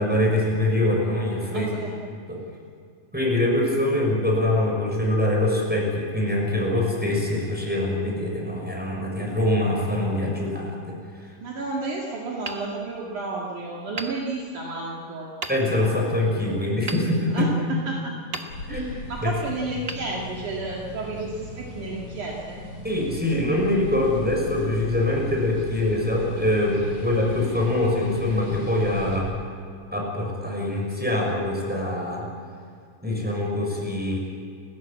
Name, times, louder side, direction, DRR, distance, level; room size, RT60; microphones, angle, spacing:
voice 1, 0.0-1.7 2.3-2.4 3.1-11.3 15.5-17.5 18.7-18.9 19.2-19.3 22.8-29.3 29.9-32.3 33.0-34.2, left 1 dB, 5° right, -1 dB, 6.0 m, -24 dB
voice 2, 1.5-2.0 11.4-15.3 17.3-18.1 18.7-22.6, right 3 dB, 70° right, -2 dB, 3.6 m, -31 dB
Hammer, 12.4-13.4 13.9-14.9 15.4-16.0 16.9-17.8 18.3-19.0 19.8-20.8, right 3 dB, 85° right, 0.5 m, -38 dB
sound 1, 18.5-29.2, equal, 60° left, 6.4 m, -38 dB
30.0 x 15.5 x 8.6 m, 2.3 s
omnidirectional pair, 3.8 m